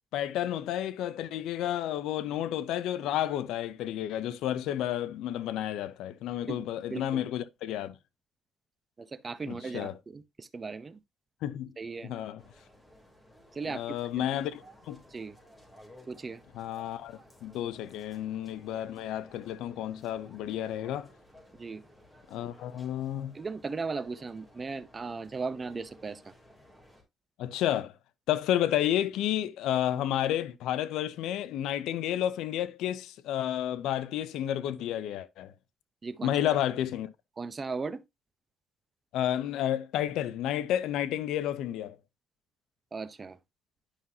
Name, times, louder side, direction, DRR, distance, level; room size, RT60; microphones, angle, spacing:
voice 1, 0.1-7.9 9.5-9.9 11.4-11.7 12.0-12.4 13.6-15.0 16.5-21.1 22.3-23.3 27.4-27.9 28.3-35.5 36.2-37.1 39.1-42.0, left 11 dB, 90° left, 0.6 m, -31 dB
voice 2, 6.9-7.2 9.0-11.0 11.8-12.1 13.5-14.2 15.1-15.4 16.1-16.4 21.5-21.8 23.3-26.3 36.0-36.6 37.4-38.0 42.9-43.4, right 4 dB, 35° right, 0.8 m, -37 dB
sound 1, 12.4-27.0, equal, 10° left, 3.2 m, -57 dB
10.0 x 5.5 x 2.8 m
cardioid pair, 90°, 0 cm